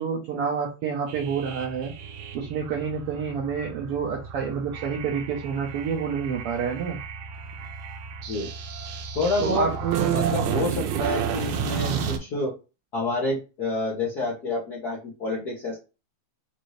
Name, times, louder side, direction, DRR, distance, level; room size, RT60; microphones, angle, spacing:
voice 1, 0.0-1.9 2.3-7.0 9.4-10.4, right 6 dB, 70° right, 0 dB, 1.5 m, -28 dB
sound 1, 1.1-12.2, right 7 dB, 85° right, 2.1 m, -32 dB
voice 2, 9.1-9.7 10.1-12.6 12.9-15.8, left 2 dB, 85° left, -3 dB, 0.8 m, -28 dB
5.2 x 2.7 x 3.1 m, 0.29 s
omnidirectional pair, 3.4 m